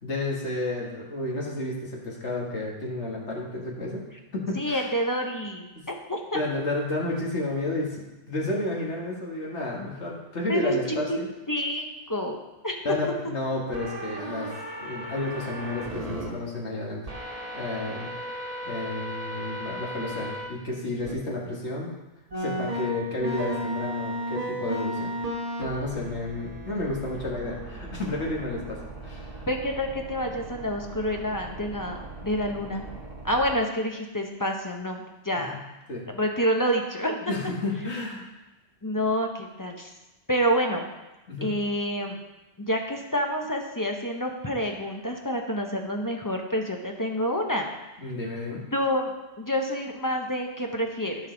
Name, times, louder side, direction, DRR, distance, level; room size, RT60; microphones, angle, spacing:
voice 1, 0.0-4.0 4.3-4.9 5.7-5.8 6.3-11.3 12.8-14.5 14.8-17.0 17.5-18.1 18.7-21.9 22.4-25.1 25.6-29.4 35.3-35.6 35.9-36.0 37.3-38.3 41.3-41.6 48.0-48.7, left 2 dB, 75° left, -3 dB, 2.1 m, -31 dB
voice 2, 4.5-6.4 10.5-10.7 11.1-11.2 11.5-12.4 12.6-12.7 29.5-32.8 33.2-35.6 36.1-37.3 38.8-39.9 40.3-40.9 41.4-42.2 42.6-47.7 48.7-49.1 49.4-51.3, equal, 20° left, 2 dB, 0.8 m, -28 dB
sound 1, 13.7-16.3 17.1-20.5 21.0-21.1 22.3-33.5, right 1 dB, 35° right, 1.3 m, -35 dB
13.0 x 5.3 x 3.9 m, 1.0 s
omnidirectional pair, 1.2 m